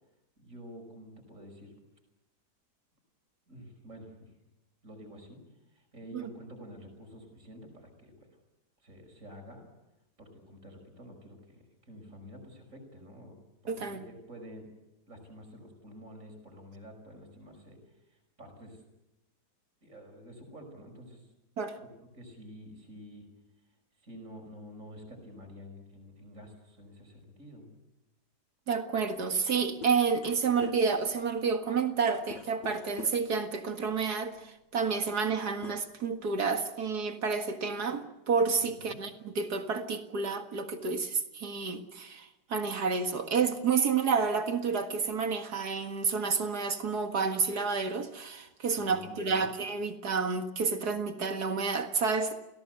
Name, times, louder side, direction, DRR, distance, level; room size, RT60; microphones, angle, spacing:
voice 1, 0.4-1.8 3.5-4.3 4.8-5.4 5.7-8.3 8.8-9.7 10.2-13.4 13.6-14.7 15.1-17.8 18.4-18.8 19.8-21.2 21.8-23.3 24.0-27.7 38.8-39.0 48.7-49.5, equal, 45° right, 4 dB, 6.0 m, -49 dB
voice 2, 13.7-14.0 21.6-21.8 28.7-52.4, right 5 dB, 65° right, 6 dB, 2.4 m, -30 dB
sound 1, 29.1-29.2 29.3-33.4 34.4-34.5 34.9-35.4 35.6-36.5, left 5 dB, 85° left, 1.9 m, -47 dB
29.5 x 17.5 x 8.0 m, 0.95 s
omnidirectional pair, 1.8 m